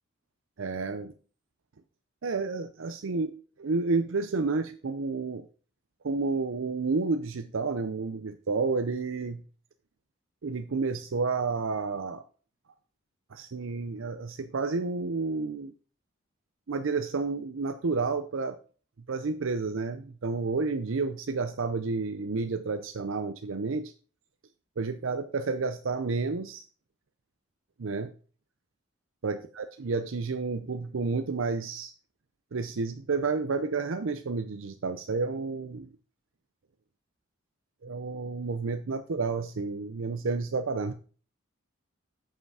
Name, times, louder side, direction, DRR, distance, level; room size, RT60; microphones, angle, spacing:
voice 1, 0.6-1.1 2.2-3.3 3.6-5.5 6.0-9.4 10.4-12.2 13.3-15.7 16.7-18.6 19.1-23.9 24.8-26.6 27.8-28.1 29.2-31.9 32.5-35.9 37.8-40.9, right 4 dB, 75° right, 8 dB, 0.6 m, -30 dB
8.0 x 5.6 x 4.8 m, 0.39 s
head